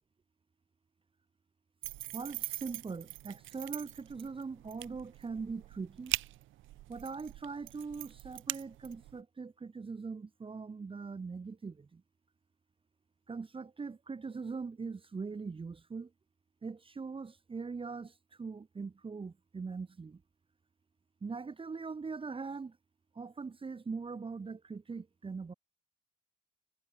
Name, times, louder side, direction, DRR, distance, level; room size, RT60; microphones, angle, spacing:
sound 1, 1.8-9.2, right 16 dB, 85° right, 0.8 m, -42 dB
voice 1, 2.1-6.2 6.9-12.0 13.3-16.1 16.6-20.2 21.2-22.8 23.1-25.5, right 4 dB, 25° right, 1.1 m, -41 dB
cardioid pair, 90°, 20 cm